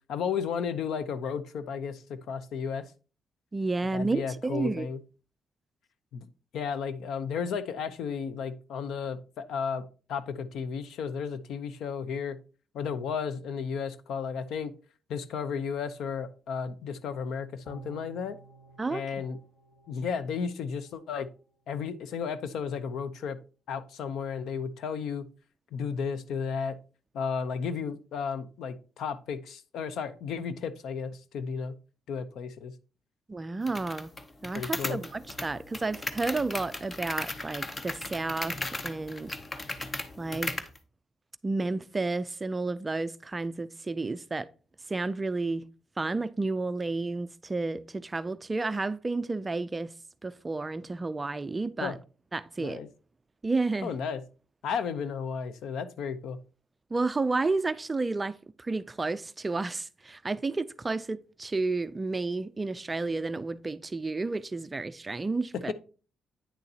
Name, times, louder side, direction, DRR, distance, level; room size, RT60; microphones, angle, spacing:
voice 1, 0.1-2.9 3.9-5.0 6.1-6.3 6.5-9.8 10.1-12.4 12.7-14.7 15.1-18.4 18.9-19.4 19.9-21.3 21.7-23.4 23.7-25.2 25.7-26.8 27.1-31.7 32.1-32.7 34.5-35.0 51.8-52.0 52.6-52.9 53.8-54.2 54.6-56.4 65.7-65.8, left 6 dB, 80° left, 0.7 m, -33 dB
voice 2, 3.5-4.9 18.8-19.0 33.3-34.1 34.4-39.4 40.2-40.6 41.4-44.5 44.9-45.7 46.0-49.9 50.2-52.0 52.3-52.8 53.4-53.9 56.9-65.7, right 3 dB, 20° right, 0.4 m, -31 dB
sound 1, 17.7-21.0 21.4-21.5, right 3 dB, 45° left, 3.0 m, -52 dB
sound 2, 33.7-40.8, left 2 dB, 20° left, 0.7 m, -37 dB
9.2 x 6.7 x 2.8 m
cardioid pair, 150°, 0 cm